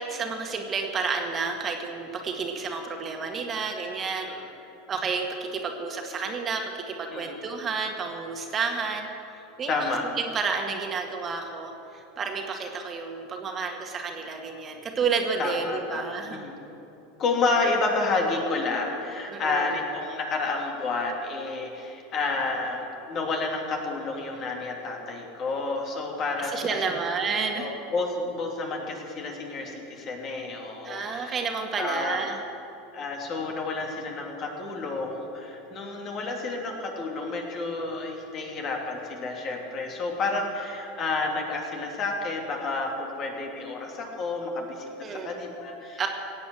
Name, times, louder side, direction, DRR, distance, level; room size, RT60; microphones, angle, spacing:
voice 1, 0.0-4.3 4.9-16.4 19.3-19.8 26.4-27.7 30.8-32.4 33.0-33.1 45.0-45.4 46.0-46.1, right 5 dB, 30° right, 3 dB, 1.8 m, -30 dB
voice 2, 9.7-10.0 15.4-16.6 17.2-26.8 27.6-31.3 31.8-32.2 32.9-46.1, left 3 dB, 40° left, 1 dB, 2.9 m, -30 dB
17.0 x 8.3 x 7.8 m, 2.9 s
hypercardioid pair, 90°, 0 cm